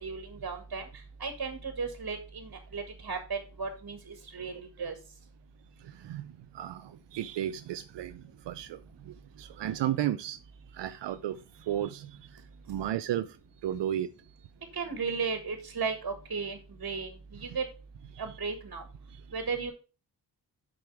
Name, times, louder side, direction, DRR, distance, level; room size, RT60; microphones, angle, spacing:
voice 1, 0.0-0.9 1.2-4.9 14.7-17.7 18.2-18.8 19.3-19.7, right 5 dB, 55° right, 1.7 m, -35 dB
voice 2, 5.8-6.3 6.5-10.4 10.7-12.4 12.7-13.4 13.6-14.1 18.1-18.2 19.1-19.2, right 11 dB, 80° right, 0.5 m, -34 dB
6.7 x 5.0 x 4.7 m
cardioid pair, 45°, 42 cm